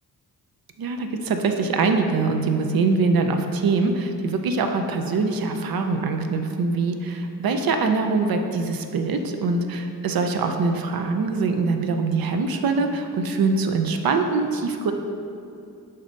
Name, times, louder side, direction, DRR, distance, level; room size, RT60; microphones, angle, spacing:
voice 1, 0.8-14.9, right 4 dB, 80° right, 5 dB, 0.6 m, -23 dB
6.6 x 2.8 x 5.1 m, 2.6 s
wide cardioid pair, 85°, 35 cm